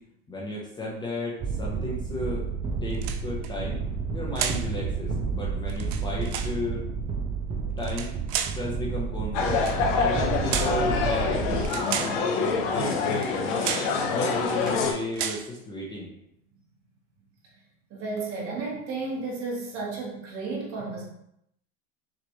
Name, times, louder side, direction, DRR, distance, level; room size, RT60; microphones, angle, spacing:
voice 1, 0.3-2.4 2.8-3.8 4.1-6.8 7.8-8.1 8.5-9.6 10.0-13.6 14.1-16.1, left 1 dB, 15° left, -5 dB, 0.6 m, -33 dB
sound 1, 1.4-11.7, right 5 dB, 20° right, 0.3 m, -31 dB
sound 2, 2.9-3.5 4.4-4.7 5.7-6.6 7.8-8.6 9.6-9.8 10.5-10.8 11.6-12.2 13.1-13.3 13.6-14.0 14.5-14.8 15.1-15.5, right 9 dB, 70° right, 0.5 m, -32 dB
sound 3, 9.3-14.9, left 5 dB, 60° left, 0.8 m, -26 dB
voice 2, 17.9-21.0, right 3 dB, 40° right, -2 dB, 1.4 m, -33 dB
6.2 x 2.4 x 3.0 m, 0.78 s
supercardioid pair, 145°, 33 cm